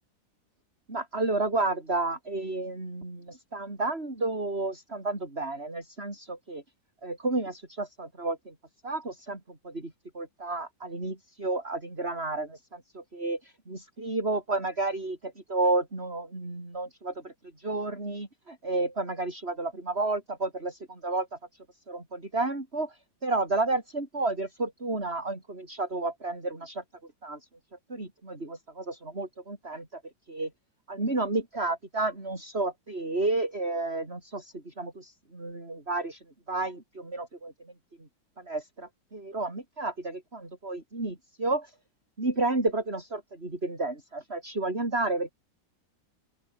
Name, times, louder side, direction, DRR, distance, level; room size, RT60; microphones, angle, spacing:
voice 1, 0.9-6.6 7.0-8.5 8.8-21.4 21.9-26.8 27.2-27.4 27.9-30.0 30.3-30.5 30.9-37.7 38.0-38.1 38.4-41.7 42.2-45.3, right 2 dB, 30° right, 5.2 m, -31 dB
open air
omnidirectional pair, 2.1 m